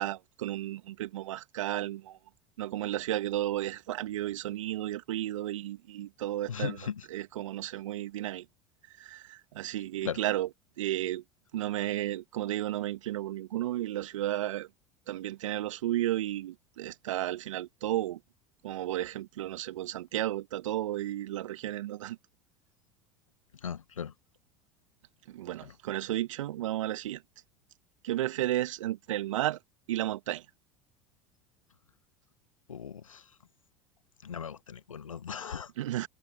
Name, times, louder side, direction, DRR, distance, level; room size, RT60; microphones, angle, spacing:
voice 1, 0.0-2.2 2.6-6.8 7.1-8.5 9.0-10.5 10.8-11.2 11.5-14.7 15.1-18.2 18.6-22.2 25.3-27.2 28.0-29.6 29.9-30.5 35.8-36.1, right 14 dB, 70° right, 2.2 m, -33 dB
voice 2, 6.5-6.9 10.0-10.2 23.6-24.1 25.6-25.7 32.7-33.2 34.2-35.7, left 7 dB, 85° left, 1.5 m, -37 dB
figure-of-eight pair, 75°, 17 cm